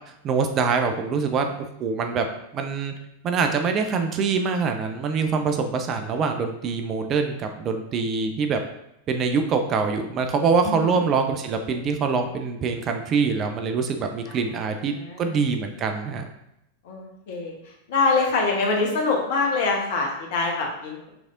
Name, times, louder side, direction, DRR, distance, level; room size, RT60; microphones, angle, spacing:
voice 1, 0.2-2.3 2.5-2.9 3.2-8.6 9.1-16.3, right 5 dB, 30° right, 5 dB, 0.5 m, -24 dB
voice 2, 10.7-11.0 14.3-14.4 14.9-15.3 16.8-17.6 17.9-21.1, left 3 dB, 55° left, 0 dB, 1.0 m, -24 dB
6.0 x 3.3 x 2.5 m, 0.83 s
figure-of-eight pair, 90°, 0 cm